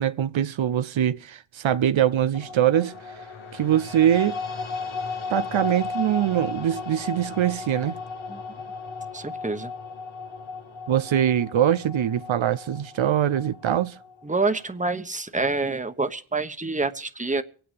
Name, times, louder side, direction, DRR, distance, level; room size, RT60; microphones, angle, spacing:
voice 1, 0.0-2.9 3.5-4.4 5.3-8.0 10.9-13.9, right 10 dB, 75° right, 0.7 m, -23 dB
sound 1, 2.3-14.6, left 4 dB, 85° left, 2.1 m, -35 dB
voice 2, 9.1-9.7 14.2-17.4, right 3 dB, 15° right, 1.2 m, -27 dB
24.0 x 9.1 x 5.2 m
cardioid pair, 70°, 47 cm